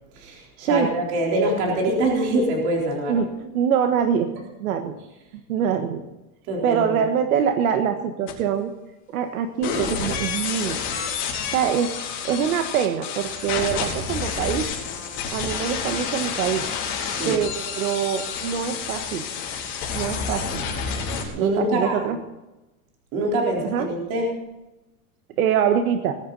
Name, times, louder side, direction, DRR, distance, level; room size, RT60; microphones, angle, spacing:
voice 1, 0.1-3.2 6.5-6.9 17.0-17.4 21.4-22.0 23.1-24.3, right 1 dB, 40° right, -1 dB, 3.9 m, -24 dB
voice 2, 3.1-4.3 4.6-4.9 5.5-6.0 6.6-8.7 9.1-10.8 11.5-11.9 12.2-14.7 15.3-16.6 17.2-19.2 19.9-20.6 21.3-22.2 23.6-23.9 25.4-26.2, right 8 dB, 80° right, 7 dB, 1.5 m, -24 dB
sound 1, 8.3-8.4 9.6-21.3, left 6 dB, 30° left, 4.2 m, -29 dB
20.5 x 10.5 x 4.1 m, 1.0 s
supercardioid pair, 175°, 43 cm